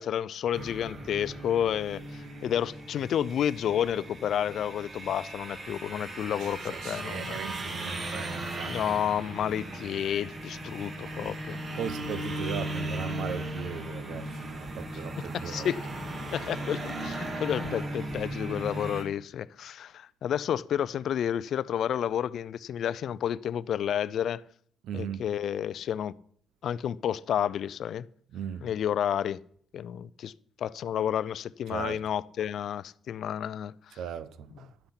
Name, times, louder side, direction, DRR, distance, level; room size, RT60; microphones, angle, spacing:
voice 1, 0.0-7.4 8.7-11.6 15.2-15.8 16.3-24.4 24.9-26.1 26.6-28.1 28.6-29.4 29.7-30.3 30.6-33.7, left 9 dB, 70° left, 0.4 m, -30 dB
sound 1, 0.5-19.0, right 1 dB, 45° right, 2.7 m, -37 dB
voice 2, 6.4-8.8 11.1-15.7 24.8-25.4 28.3-28.7 31.7-32.0 34.0-34.7, right 8 dB, 80° right, 0.7 m, -38 dB
11.5 x 8.8 x 5.8 m
cardioid pair, 90°, 0 cm